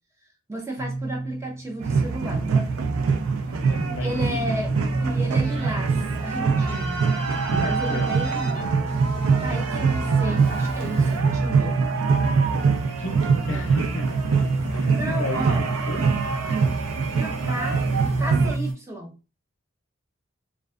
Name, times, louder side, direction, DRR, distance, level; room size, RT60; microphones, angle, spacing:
voice 1, 0.5-3.0 4.0-4.7 5.0-7.0 7.6-8.6 9.4-11.8 13.5-13.8 15.0-15.7 17.1-17.9 18.2-19.1, right 1 dB, 15° right, 1 dB, 0.4 m, -33 dB
sound 1, 0.8-18.7, right 2 dB, 65° right, 1.0 m, -31 dB
sound 2, 1.8-18.6, right 5 dB, 85° right, 0.4 m, -24 dB
voice 2, 3.6-4.5 7.5-8.1 13.0-14.4 14.7-16.0, left 2 dB, 65° left, 6 dB, 0.5 m, -34 dB
Keyboard (musical), 4.8-11.2, left 1 dB, 30° right, 0.9 m, -41 dB
2.5 x 2.2 x 2.3 m, 0.31 s
head